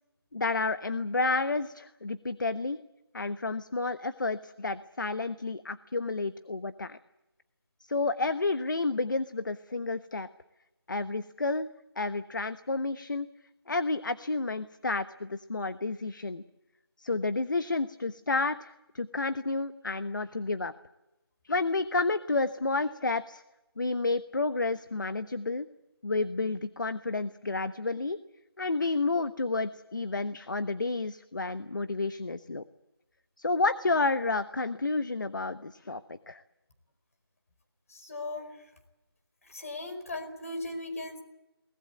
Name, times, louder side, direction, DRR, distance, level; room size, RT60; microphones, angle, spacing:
voice 1, 0.3-2.8 3.1-7.0 7.8-10.3 10.9-11.7 12.0-13.3 13.7-16.4 17.0-20.7 21.4-23.4 23.8-25.7 26.0-28.2 28.6-32.6 33.4-36.4, left 3 dB, 50° left, 12 dB, 1.1 m, -30 dB
voice 2, 37.9-38.5 39.5-41.2, left 2 dB, 35° left, 7 dB, 4.8 m, -37 dB
22.5 x 19.5 x 9.5 m, 0.97 s
figure-of-eight pair, 175°, 13 cm